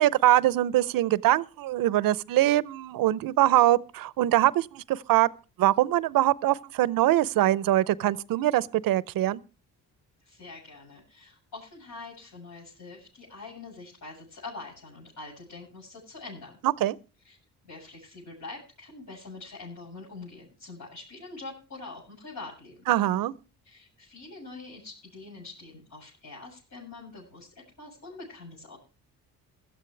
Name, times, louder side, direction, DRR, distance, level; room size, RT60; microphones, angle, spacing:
voice 1, 0.0-5.3 5.6-9.4 16.6-17.0 22.9-23.3, right 14 dB, 70° right, 0.7 m, -23 dB
voice 2, 10.2-16.6 17.2-17.4 17.6-22.8 23.6-28.8, left 3 dB, 60° left, 7.9 m, -44 dB
16.0 x 13.0 x 3.3 m
cardioid pair, 90°, 35 cm